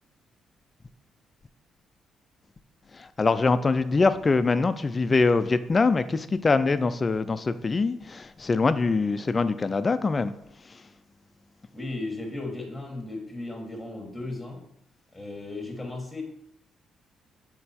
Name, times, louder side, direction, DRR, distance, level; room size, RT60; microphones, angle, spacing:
voice 1, 2.9-10.3 10.7-10.8, left 4 dB, 30° left, 0.4 m, -24 dB
voice 2, 11.7-14.6 15.1-16.2, left 2 dB, 10° left, 1.6 m, -35 dB
6.7 x 4.0 x 4.3 m
cardioid pair, 90°, 0 cm